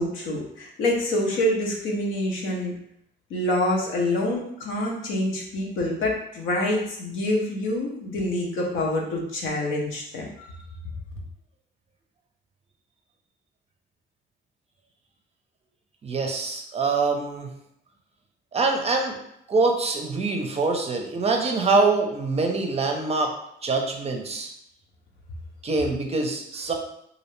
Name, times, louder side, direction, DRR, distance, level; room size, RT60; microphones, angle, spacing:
voice 1, 0.0-2.7 3.3-10.5, left 1 dB, 85° left, -1 dB, 0.7 m, -26 dB
voice 2, 16.0-17.5 18.5-19.2 19.5-23.3 23.6-24.5 25.6-26.7, right 3 dB, 30° right, 2 dB, 0.5 m, -24 dB
2.5 x 2.0 x 3.0 m, 0.75 s
cardioid pair, 90°, 20 cm